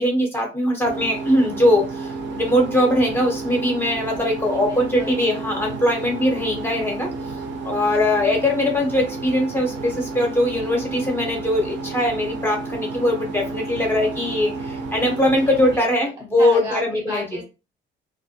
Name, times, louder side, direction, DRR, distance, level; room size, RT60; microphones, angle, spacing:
voice 1, 0.0-7.1 7.6-17.3, left 1 dB, 10° left, -1 dB, 0.8 m, -21 dB
sound 1, 0.8-15.8, right 3 dB, 65° right, 0.5 m, -31 dB
voice 2, 4.5-5.2 15.4-17.4, left 1 dB, 25° right, -4 dB, 0.8 m, -35 dB
2.4 x 2.0 x 2.7 m, 0.30 s
cardioid pair, 90°, 20 cm